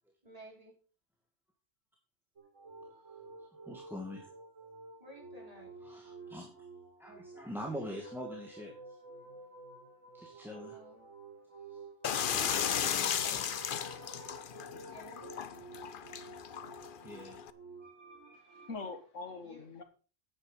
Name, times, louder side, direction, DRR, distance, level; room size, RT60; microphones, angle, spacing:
voice 1, 0.2-0.7 5.0-5.7 10.7-11.1 14.7-15.5 19.4-19.7, equal, 30° right, 4.5 m, -54 dB
sound 1, 2.4-18.7, right 4 dB, 80° right, 3.9 m, -51 dB
voice 2, 3.7-4.2 5.8-6.6 7.0-9.2 10.1-10.8 11.7-11.9 12.3-13.7 17.0-17.5 18.1-18.2, equal, ahead, 2.0 m, -45 dB
sound 2, 12.0-17.5, left 8 dB, 50° left, 0.7 m, -35 dB
sound 3, 12.3-14.5, right 4 dB, 55° right, 1.3 m, -50 dB
voice 3, 18.3-19.8, left 3 dB, 75° left, 2.0 m, -43 dB
9.8 x 9.3 x 5.4 m
omnidirectional pair, 1.3 m